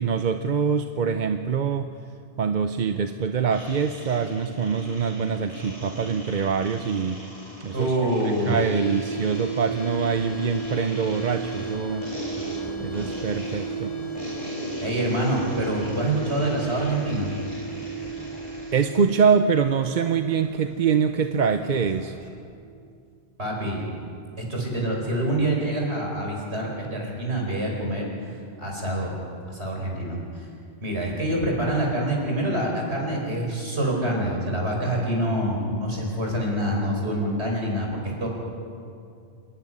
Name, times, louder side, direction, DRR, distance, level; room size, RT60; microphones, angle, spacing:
voice 1, 0.0-1.9 2.4-7.2 7.6-8.1 8.5-12.1 12.8-13.9 18.7-22.1, right 6 dB, 50° right, 8 dB, 0.8 m, -24 dB
sound 1, 3.5-18.9, equal, 50° left, 8.1 m, -39 dB
voice 2, 7.7-8.6 14.8-17.3 23.4-23.8 24.4-29.1 29.5-30.5 30.8-38.3, right 1 dB, 80° right, -1 dB, 5.0 m, -26 dB
sound 2, 8.6-22.5, right 4 dB, 30° right, 3.2 m, -35 dB
Subway metro underground, 9.8-22.3, left 1 dB, 20° left, 3.0 m, -42 dB
27.0 x 11.5 x 9.9 m, 2.4 s
omnidirectional pair, 1.1 m